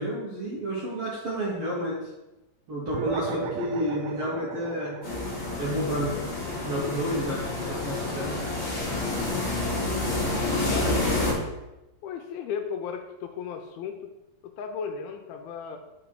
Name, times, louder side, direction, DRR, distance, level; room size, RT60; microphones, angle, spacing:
voice 1, 0.0-2.1 2.7-5.0 5.6-6.3 6.6-8.4, equal, 60° right, -6 dB, 1.6 m, -30 dB
sound 1, 2.9-7.7, right 7 dB, 90° right, 2.7 m, -36 dB
sound 2, 5.0-11.3, left 2 dB, 20° left, 2.4 m, -28 dB
voice 2, 10.6-11.6 12.0-14.1 14.4-15.8, left 6 dB, 80° left, 5 dB, 2.4 m, -35 dB
6.3 x 6.0 x 4.7 m, 0.98 s
omnidirectional pair, 4.6 m